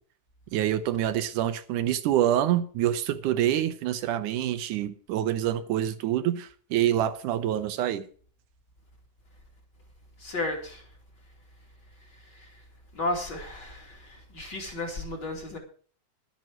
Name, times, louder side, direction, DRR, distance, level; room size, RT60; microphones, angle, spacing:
voice 1, 0.5-8.1, right 11 dB, 80° right, 2.3 m, -26 dB
voice 2, 10.2-10.8 12.3-12.5 12.9-15.6, left 2 dB, 35° left, 3.1 m, -33 dB
12.0 x 9.4 x 6.3 m
omnidirectional pair, 3.6 m